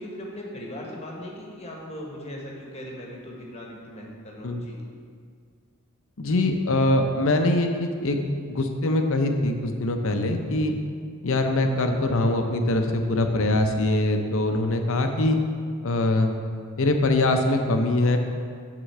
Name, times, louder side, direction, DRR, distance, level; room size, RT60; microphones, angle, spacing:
voice 1, 0.0-4.8, left 1 dB, 30° left, -2 dB, 1.2 m, -38 dB
voice 2, 6.2-8.2 8.5-10.7 11.2-15.4 15.8-16.3 16.8-18.2, left 2 dB, 65° left, 5 dB, 0.7 m, -23 dB
7.9 x 3.8 x 6.6 m, 2.1 s
head